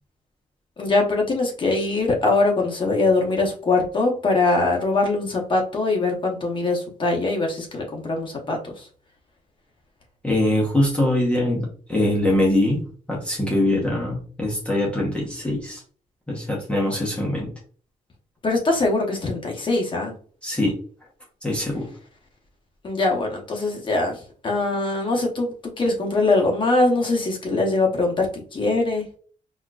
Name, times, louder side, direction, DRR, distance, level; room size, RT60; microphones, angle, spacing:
voice 1, 0.8-8.9 18.4-20.1 22.8-29.0, left 2 dB, 35° left, 1 dB, 0.9 m, -22 dB
voice 2, 10.2-15.8 16.3-17.5 20.4-20.7 21.4-21.9, left 1 dB, 10° left, -4 dB, 0.9 m, -23 dB
4.3 x 2.5 x 2.3 m, 0.42 s
wide cardioid pair, 165°, 14 cm